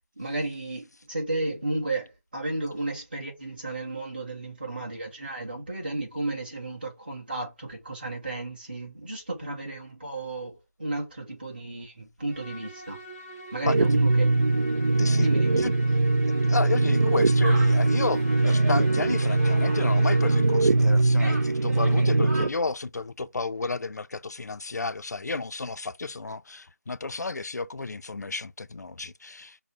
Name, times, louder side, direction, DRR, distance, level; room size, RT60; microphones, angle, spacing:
voice 1, 0.2-13.0 13.5-14.2 15.1-15.6, right 2 dB, 35° right, 1.6 m, -33 dB
Musical instrument, 12.3-20.8, equal, 10° left, 0.8 m, -43 dB
sound 1, 13.6-22.5, right 2 dB, 80° right, 0.5 m, -22 dB
voice 2, 13.7-14.0 15.0-15.7 16.4-29.6, left 3 dB, 80° left, 0.4 m, -32 dB
sound 2, 17.4-22.5, right 1 dB, 20° right, 1.9 m, -40 dB
5.2 x 2.1 x 4.6 m
figure-of-eight pair, 180°, 9 cm